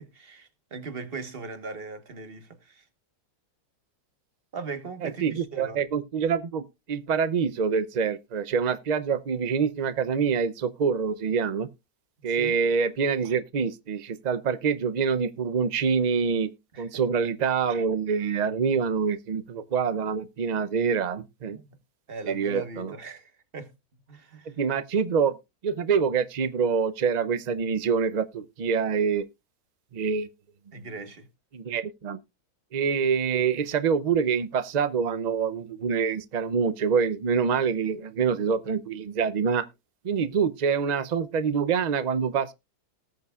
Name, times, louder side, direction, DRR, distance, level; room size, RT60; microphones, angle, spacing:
voice 1, 0.0-2.8 4.5-5.8 12.3-12.5 16.7-17.0 21.5-21.8 22.1-23.7 24.1-24.5 30.7-31.3, right 4 dB, 40° right, 1.4 m, -39 dB
voice 2, 5.0-11.7 12.2-21.6 22.3-22.9 24.5-25.4 25.6-29.3 29.9-30.3 31.5-32.2 32.7-39.7 40.0-42.5, right 6 dB, 85° right, 0.3 m, -26 dB
19.0 x 6.7 x 2.4 m
omnidirectional pair, 1.6 m